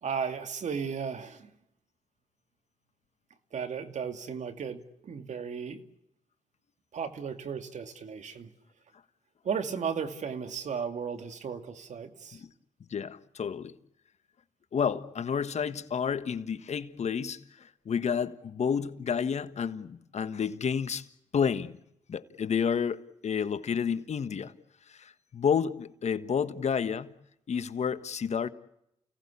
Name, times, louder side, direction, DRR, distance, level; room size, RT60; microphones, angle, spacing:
voice 1, 0.0-1.5 3.5-5.8 6.9-8.5 9.4-12.4, right 6 dB, 65° right, 2.5 m, -35 dB
voice 2, 12.9-13.7 14.7-21.1 21.3-21.8 22.1-24.5 24.9-27.2 27.5-28.5, left 7 dB, 60° left, 1.4 m, -30 dB
29.5 x 18.0 x 8.5 m
supercardioid pair, 50°, 13 cm